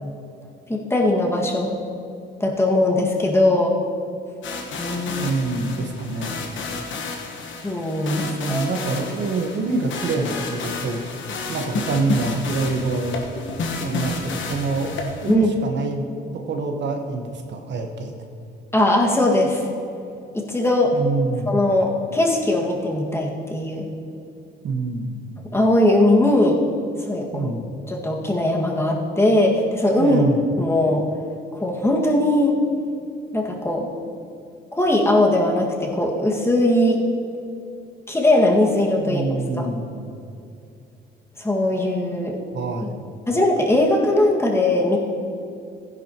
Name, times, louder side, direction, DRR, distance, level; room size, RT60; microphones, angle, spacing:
voice 1, 0.7-1.8 2.4-3.7 4.8-5.3 7.6-8.7 15.3-15.5 18.7-19.7 20.3-20.9 21.5-23.9 25.5-26.6 27.1-27.5 27.9-30.2 30.6-31.0 31.6-32.6 33.3-33.9 34.7-37.0 38.1-39.2 39.6-39.7 41.4-42.4 43.3-45.0, left 1 dB, 10° left, -1 dB, 1.9 m, -20 dB
sound 1, 4.4-15.4, left 3 dB, 75° left, 1.4 m, -31 dB
voice 2, 5.1-6.4 8.2-11.0 11.5-13.2 13.8-15.0 15.2-16.0 16.3-18.1 20.9-21.6 24.6-25.3 27.3-27.6 30.0-30.4 39.0-40.2 42.5-43.1, right 3 dB, 65° right, 3 dB, 1.3 m, -26 dB
15.0 x 10.5 x 3.0 m, 2.5 s
cardioid pair, 90°, 20 cm